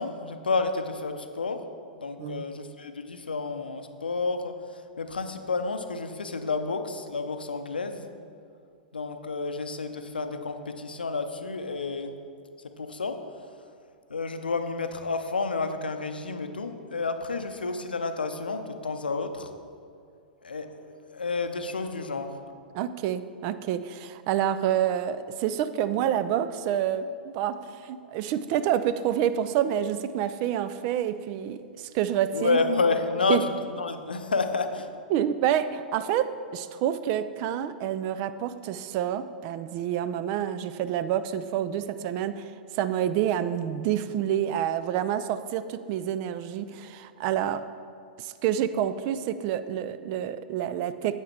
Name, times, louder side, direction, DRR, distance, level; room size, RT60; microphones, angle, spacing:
voice 1, 0.0-1.7 2.0-8.1 8.9-12.1 12.8-13.2 14.1-19.5 20.4-22.4 32.3-34.9, left 4 dB, 80° left, 8 dB, 0.6 m, -30 dB
voice 2, 22.7-32.6 33.3-33.4 35.1-47.6 48.2-51.2, right 10 dB, 40° right, 13 dB, 0.4 m, -28 dB
9.1 x 8.0 x 3.3 m, 2.3 s
figure-of-eight pair, 100°, 5 cm